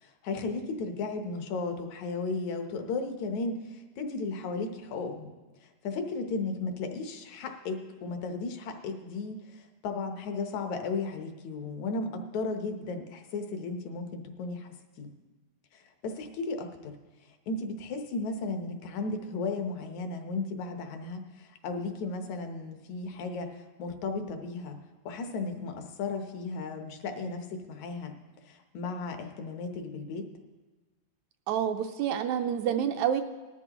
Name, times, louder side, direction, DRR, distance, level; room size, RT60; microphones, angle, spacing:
voice 1, 0.0-5.3 5.8-15.1 15.7-17.0 17.5-28.2 28.5-30.3, left 3 dB, 75° left, 5 dB, 2.3 m, -35 dB
voice 2, 31.5-33.2, right 9 dB, 80° right, 7 dB, 1.8 m, -28 dB
19.0 x 12.5 x 3.0 m, 1.2 s
omnidirectional pair, 3.4 m